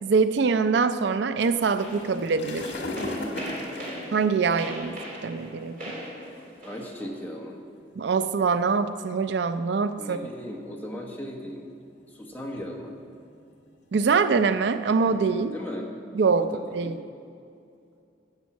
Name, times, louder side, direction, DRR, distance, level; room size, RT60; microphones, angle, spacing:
voice 1, 0.0-2.7 4.1-5.8 8.0-10.2 13.9-15.5 16.1-17.0, right 5 dB, 65° right, 11 dB, 0.4 m, -24 dB
sound 1, 1.4-4.9 5.7-5.9 6.6-6.7 7.0-7.2 7.8-8.3 9.1-10.2 10.7-11.2 11.6-12.0 12.4-15.1, left 2 dB, 80° left, 1.6 m, -38 dB
sound 2, 1.8-7.0, equal, 45° right, 3.3 m, -39 dB
voice 2, 6.4-7.6 10.0-11.6 12.1-13.0 15.4-15.9 16.4-16.9, equal, 10° left, -1 dB, 1.2 m, -37 dB
10.5 x 7.3 x 7.2 m, 2.5 s
head